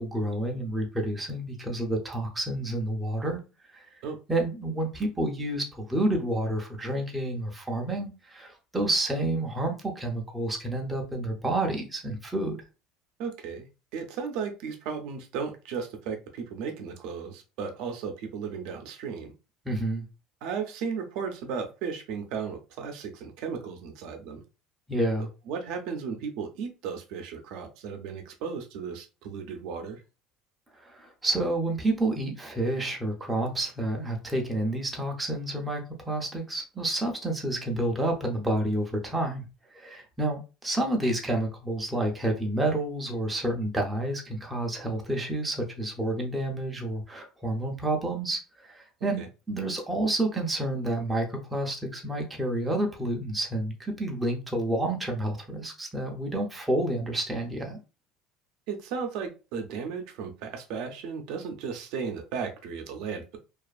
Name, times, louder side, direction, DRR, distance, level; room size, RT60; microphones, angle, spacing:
voice 1, 0.0-3.4 3.7-3.9 4.3-12.6 19.7-20.0 24.9-25.3 30.7-39.4 39.7-57.8, right 1 dB, 10° right, 0.5 m, -29 dB
voice 2, 13.2-13.7 13.9-19.3 20.4-24.4 25.2-30.0 49.2-49.3 58.7-63.4, right 6 dB, 65° right, 0.5 m, -35 dB
2.4 x 2.4 x 2.3 m
cardioid pair, 160°, 0 cm